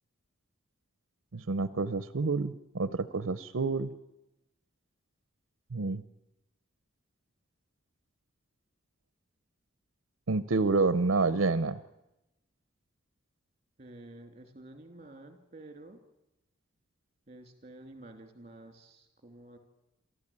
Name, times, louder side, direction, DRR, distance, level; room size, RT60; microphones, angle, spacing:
voice 1, 1.3-3.9 5.7-6.0 10.3-11.8, right 3 dB, 75° right, 14 dB, 0.7 m, -28 dB
voice 2, 13.8-16.0 17.3-19.6, right 2 dB, 35° right, 6 dB, 3.0 m, -50 dB
28.0 x 13.5 x 8.6 m, 0.93 s
head